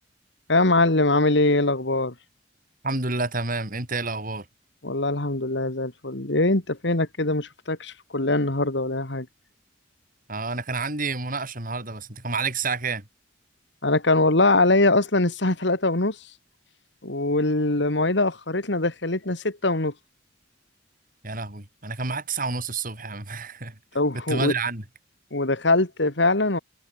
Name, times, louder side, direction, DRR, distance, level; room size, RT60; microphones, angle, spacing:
voice 1, 0.5-2.1 4.8-9.3 13.8-16.2 17.0-19.9 23.9-24.5 25.3-26.6, left 2 dB, 65° left, 2.3 m, -22 dB
voice 2, 2.8-4.5 10.3-13.1 21.2-23.8 24.3-24.8, right 3 dB, 45° right, 6.5 m, -29 dB
head